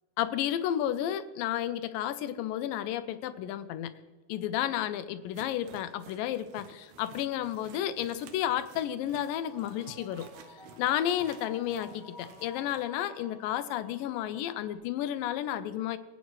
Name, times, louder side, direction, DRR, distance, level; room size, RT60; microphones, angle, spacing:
voice 1, 0.2-3.9 4.3-10.3 10.8-16.0, left 11 dB, 80° left, 12 dB, 2.3 m, -32 dB
sound 1, 5.3-12.9, right 7 dB, 70° right, 1.9 m, -53 dB
sound 2, 9.4-14.8, left 2 dB, 50° right, 0.6 m, -51 dB
24.5 x 8.5 x 3.1 m, 1.3 s
omnidirectional pair, 4.1 m